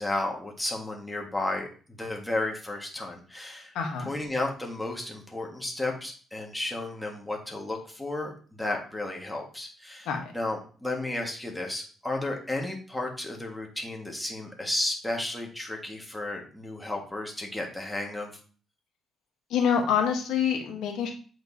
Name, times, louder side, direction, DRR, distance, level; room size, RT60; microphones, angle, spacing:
voice 1, 0.0-1.7 2.0-3.7 4.0-10.1 10.3-18.3, left 2 dB, 5° left, 0 dB, 1.6 m, -33 dB
voice 2, 3.7-4.1 10.1-10.3 19.5-21.1, left 7 dB, 85° left, 2 dB, 1.1 m, -26 dB
7.8 x 4.5 x 2.7 m, 0.41 s
cardioid pair, 90°, 0 cm